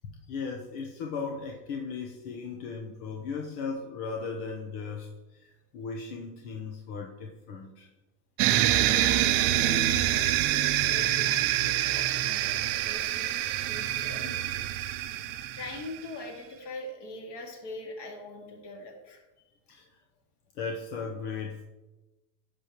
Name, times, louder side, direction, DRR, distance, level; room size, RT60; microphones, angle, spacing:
voice 1, 0.0-7.9 19.7-19.9 20.5-21.6, left 5 dB, 80° left, 1 dB, 1.1 m, -37 dB
sound 1, 8.4-16.0, right 14 dB, 70° right, 0.6 m, -26 dB
voice 2, 9.0-13.3 13.7-14.5 15.5-19.5, left 2 dB, 55° left, 1 dB, 2.3 m, -42 dB
11.0 x 7.0 x 3.1 m, 1.1 s
supercardioid pair, 130°, 48 cm